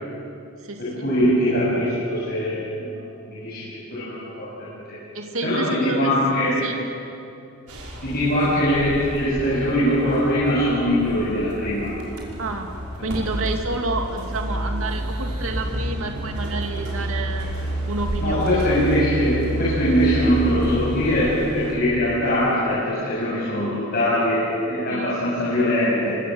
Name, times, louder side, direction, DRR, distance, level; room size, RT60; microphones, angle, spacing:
voice 1, 0.8-2.6 2.9-3.6 3.9-4.5 4.9-5.0 5.4-6.6 8.0-11.9 13.0-13.3 18.2-26.2, equal, 45° left, -8 dB, 7.3 m, -22 dB
voice 2, 5.1-6.1 6.6-6.8 12.4-12.7 13.0-18.5 24.9-25.2, right 2 dB, 70° right, 3 dB, 2.4 m, -29 dB
sound 1, 7.7-21.7, right 1 dB, 90° right, 5.6 m, -30 dB
28.5 x 24.5 x 7.9 m, 2.7 s
head